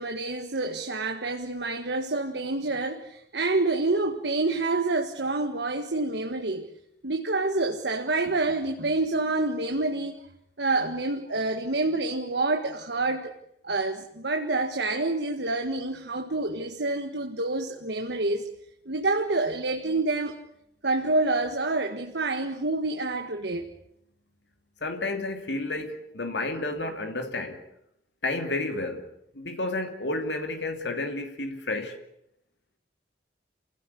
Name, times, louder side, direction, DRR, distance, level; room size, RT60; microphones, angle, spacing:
voice 1, 0.0-6.7 7.0-10.2 10.6-13.3 13.6-18.5 18.9-20.4 20.8-23.7, right 2 dB, 80° right, 1.7 m, -27 dB
voice 2, 24.8-27.6 28.2-29.1 29.3-32.0, left 2 dB, 80° left, 2.9 m, -31 dB
28.5 x 16.5 x 9.9 m
head